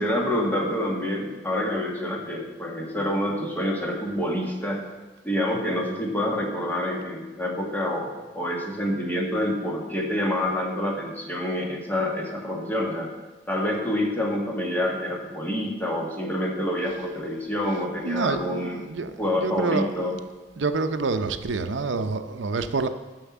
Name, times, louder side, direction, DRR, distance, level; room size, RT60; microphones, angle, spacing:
voice 1, 0.0-4.9 5.2-13.1 13.5-18.9 19.2-20.2, left 1 dB, 10° left, -1 dB, 1.7 m, -27 dB
voice 2, 18.0-19.1 19.4-19.9 20.6-22.9, right 4 dB, 75° right, 9 dB, 0.7 m, -27 dB
10.0 x 6.5 x 7.2 m, 1.2 s
head